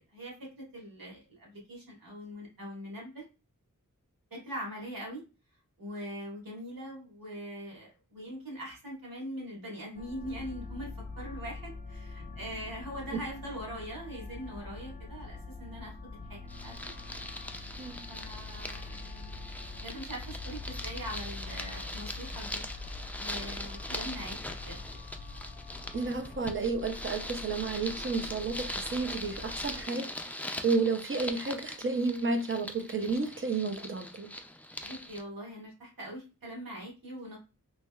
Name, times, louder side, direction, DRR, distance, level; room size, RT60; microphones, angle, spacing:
voice 1, 0.1-3.2 4.3-5.2 5.8-10.9 11.2-15.9 16.3-16.7 18.1-19.5 19.8-22.6 23.1-24.8 34.8-37.4, equal, 90° right, 1.5 m, -42 dB
sound 1, 9.9-29.8, left 3 dB, 30° left, 0.7 m, -44 dB
sound 2, 16.5-35.2, left 1 dB, 5° left, 0.3 m, -41 dB
voice 2, 25.9-34.3, right 4 dB, 40° right, 0.6 m, -32 dB
3.2 x 2.8 x 2.3 m
wide cardioid pair, 75°, 33 cm